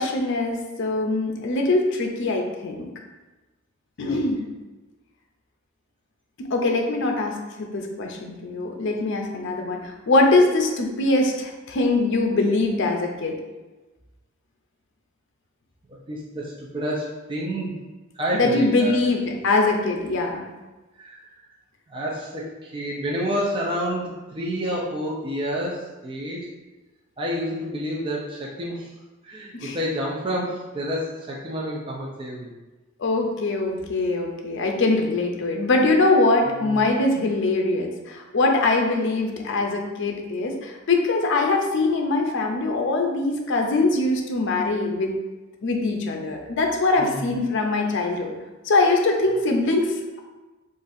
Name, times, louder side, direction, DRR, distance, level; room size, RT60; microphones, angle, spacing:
voice 1, 0.0-2.9 4.0-4.5 6.5-13.4 18.3-20.4 29.5-29.8 33.0-45.1 45.6-48.4 48.6-50.2, left 2 dB, 60° left, 2 dB, 0.5 m, -22 dB
voice 2, 15.9-17.8 18.1-19.0 20.9-21.4 21.9-26.5 27.2-28.9 29.2-32.5 36.5-36.9 47.0-47.4, equal, 25° right, -4 dB, 0.4 m, -29 dB
3.9 x 2.5 x 2.6 m, 1.2 s
head